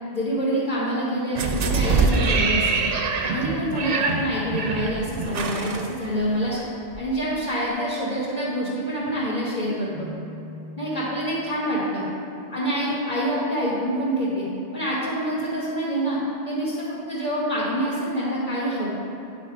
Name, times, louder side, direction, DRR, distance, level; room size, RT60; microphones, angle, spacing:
voice 1, 0.1-2.9 3.2-6.6 7.0-10.1 10.8-12.0 12.5-14.4 14.7-16.2 16.4-18.9, equal, 40° left, -10 dB, 1.7 m, -26 dB
sound 1, 1.4-6.6 6.9-7.0, right 4 dB, 55° right, 0.8 m, -24 dB
Keyboard (musical), 9.9-11.7, left 1 dB, 55° left, 1.9 m, -42 dB
9.6 x 6.0 x 4.5 m, 2.9 s
omnidirectional pair, 1.2 m